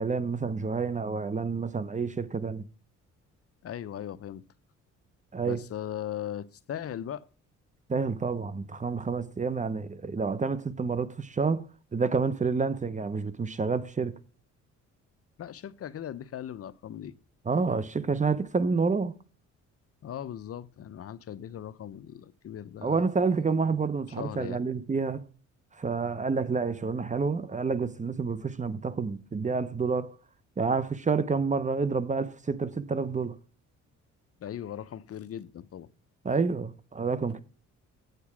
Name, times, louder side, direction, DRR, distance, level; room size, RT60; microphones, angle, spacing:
voice 1, 0.0-2.7 5.3-5.6 7.9-11.6 11.9-14.2 17.5-19.2 22.8-25.2 25.8-30.1 30.6-33.4 36.2-37.4, right 4 dB, 25° right, 0.8 m, -29 dB
voice 2, 3.6-4.4 5.5-7.3 15.4-17.1 20.0-23.1 24.2-24.6 34.4-35.9, left 10 dB, 50° left, 0.7 m, -38 dB
8.2 x 6.7 x 6.0 m
cardioid pair, 90°, 30 cm